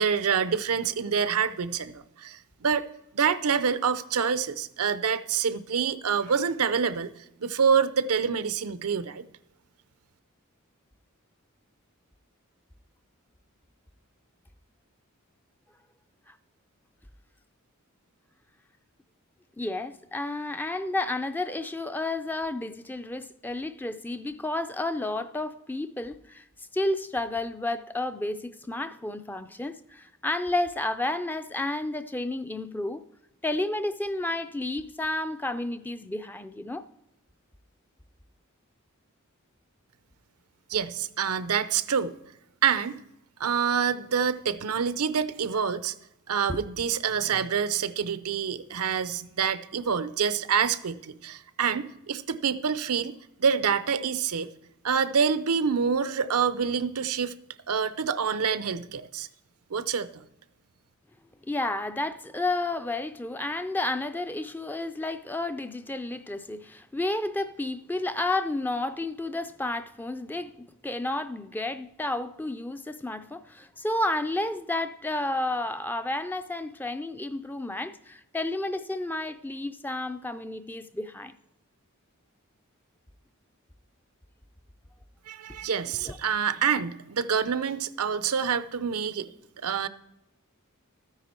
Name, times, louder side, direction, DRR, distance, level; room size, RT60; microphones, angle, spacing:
voice 1, 0.0-2.9 3.1-7.1 7.4-9.2 40.7-42.1 42.6-43.0 43.4-45.9 46.3-53.1 53.4-54.5 54.8-57.3 57.7-59.3 59.7-60.2 85.3-89.3 89.6-89.9, right 6 dB, 85° right, 0.6 m, -26 dB
voice 2, 19.6-26.5 26.7-33.0 33.4-36.8 46.5-46.6 61.5-81.4 86.0-86.2, left 2 dB, 10° left, 0.4 m, -31 dB
13.0 x 9.6 x 4.4 m
head